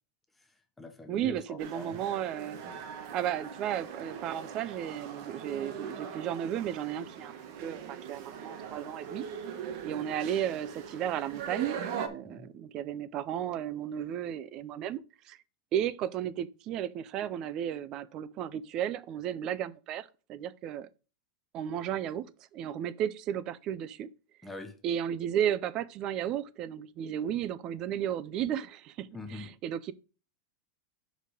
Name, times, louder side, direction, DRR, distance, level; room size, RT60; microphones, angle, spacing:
voice 1, 0.4-2.0 2.6-2.8 12.2-12.5 24.4-24.8 29.1-29.6, left 3 dB, 5° left, 0.9 m, -44 dB
voice 2, 1.1-2.6 3.1-7.3 7.6-9.2 9.8-15.4 15.7-20.9 21.5-22.3 22.5-24.1 24.8-29.1 29.6-29.9, right 10 dB, 25° right, 0.4 m, -34 dB
sound 1, 1.6-12.1, right 7 dB, 45° right, 1.0 m, -41 dB
6.7 x 5.0 x 4.9 m
supercardioid pair, 175°, 2 cm